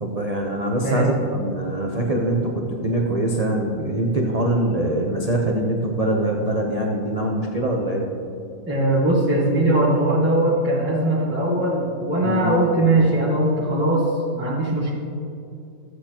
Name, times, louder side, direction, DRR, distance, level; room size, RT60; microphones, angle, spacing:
voice 1, 0.0-8.0 12.2-12.5, right 1 dB, 80° right, -1 dB, 0.3 m, -23 dB
voice 2, 0.8-1.1 8.7-14.1 14.3-15.0, right 1 dB, 10° right, -7 dB, 0.9 m, -20 dB
14.0 x 8.1 x 2.9 m, 2.6 s
omnidirectional pair, 2.0 m